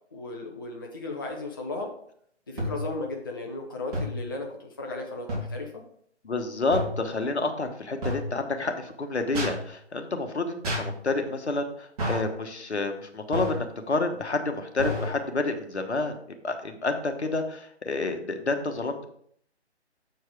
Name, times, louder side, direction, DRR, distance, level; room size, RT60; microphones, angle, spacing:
voice 1, 0.0-1.9 2.5-5.8, left 2 dB, 20° left, 1 dB, 0.5 m, -35 dB
sound 1, 2.6-3.0 3.9-4.3 5.3-5.6 6.7-7.0 8.0-8.3 9.3-9.6 10.6-11.0 12.0-12.3 13.3-13.6 14.8-15.2, equal, 35° right, 2.8 m, -30 dB
voice 2, 6.2-16.2 16.4-19.0, left 3 dB, 70° left, 5 dB, 1.2 m, -29 dB
7.6 x 4.6 x 4.6 m, 0.65 s
figure-of-eight pair, 145°, 34 cm